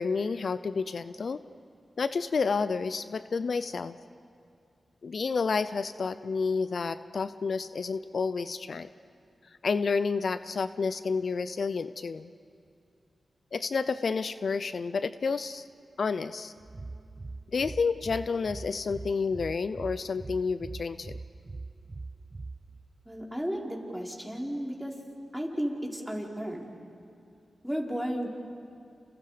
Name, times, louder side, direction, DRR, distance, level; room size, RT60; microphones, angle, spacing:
voice 1, 0.0-1.4 2.0-4.0 5.0-8.9 9.6-12.3 13.5-15.6 16.0-16.5 17.5-21.2, left 4 dB, 70° left, 13 dB, 0.5 m, -30 dB
sound 1, 16.6-23.1, right 3 dB, 40° right, 0.8 m, -43 dB
voice 2, 23.0-24.9 25.3-26.7 27.6-28.3, equal, ahead, -1 dB, 4.7 m, -33 dB
29.5 x 28.0 x 5.1 m, 2.5 s
cardioid pair, 45°, 0 cm